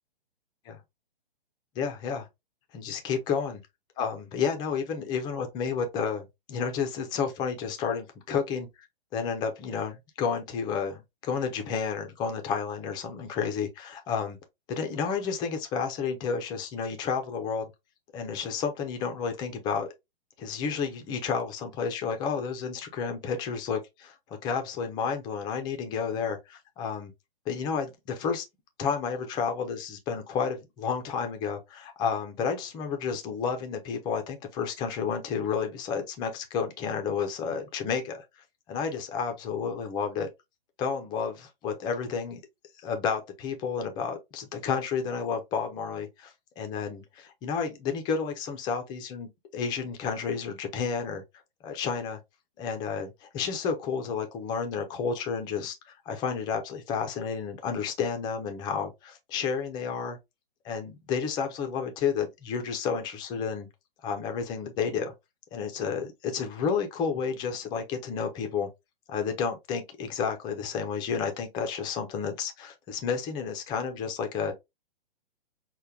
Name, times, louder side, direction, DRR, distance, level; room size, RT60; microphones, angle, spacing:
voice 1, 1.8-2.3 2.7-3.6 4.0-8.7 9.1-14.4 14.7-17.7 18.1-19.9 20.4-24.1 24.4-27.1 27.5-28.4 28.8-38.2 38.7-40.3 40.8-42.4 42.8-51.2 51.6-52.2 52.6-60.2 60.6-63.7 64.0-65.1 65.5-68.7 69.1-74.5, left 6 dB, 15° left, 0.4 m, -31 dB
5.4 x 2.2 x 2.2 m
hypercardioid pair, 130°, 29 cm